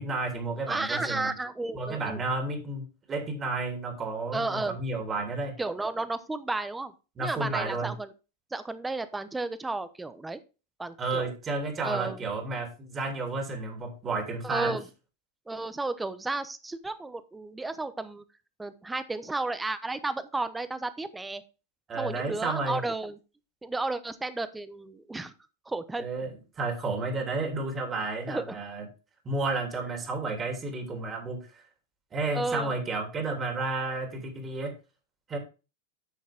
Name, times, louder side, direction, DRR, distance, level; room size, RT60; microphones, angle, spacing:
voice 1, 0.0-1.3 1.7-5.5 7.2-7.9 11.0-14.8 21.9-22.8 26.0-28.9 29.2-31.6 32.1-34.7 35.3-35.4, right 3 dB, 25° right, 4 dB, 3.2 m, -32 dB
voice 2, 0.7-2.2 4.3-4.8 5.6-6.9 7.2-8.1 8.5-10.4 10.8-11.3 11.8-12.3 14.4-14.8 15.5-18.2 18.6-21.4 21.9-23.2 23.6-25.3 25.7-26.0 28.3-28.6 32.3-32.7, right 2 dB, 10° right, 13 dB, 0.9 m, -33 dB
9.4 x 6.3 x 3.6 m, 0.31 s
hypercardioid pair, 105°, 0 cm